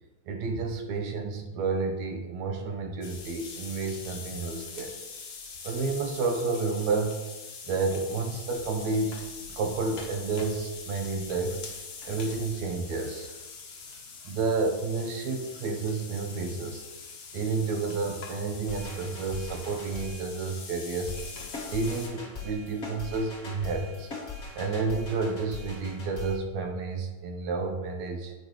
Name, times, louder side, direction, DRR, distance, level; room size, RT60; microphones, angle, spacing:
voice 1, 0.3-5.0 5.6-7.2 7.7-9.2 9.5-11.6 12.1-13.4 14.3-16.8 17.3-21.2 21.7-24.1 24.5-28.3, right 4 dB, 70° right, 4 dB, 2.0 m, -30 dB
sound 1, 3.0-22.1, left 5 dB, 55° left, 1.4 m, -43 dB
sound 2, 18.7-20.2 21.1-26.4, left 3 dB, 30° left, 1.4 m, -41 dB
9.4 x 8.3 x 3.2 m, 1.1 s
omnidirectional pair, 3.8 m